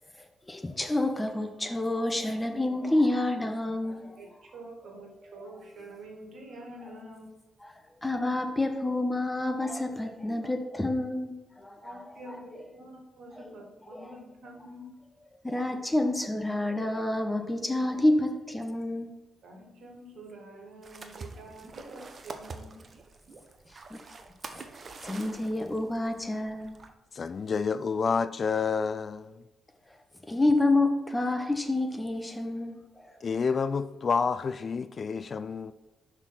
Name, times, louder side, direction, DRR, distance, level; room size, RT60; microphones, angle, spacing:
voice 1, 0.5-4.1 7.6-7.7 8.0-12.0 13.9-14.1 15.4-19.1 23.9-24.0 25.0-26.7 30.3-33.1, left 2 dB, 20° left, 1.1 m, -28 dB
voice 2, 4.5-7.3 11.8-14.9 19.4-23.0, right 1 dB, 60° right, 1.8 m, -47 dB
sound 1, 20.8-26.9, right 4 dB, 45° right, 0.8 m, -46 dB
voice 3, 27.1-29.4 33.2-35.7, left 5 dB, 50° left, 0.3 m, -29 dB
5.8 x 4.5 x 5.8 m
hypercardioid pair, 40°, 0 cm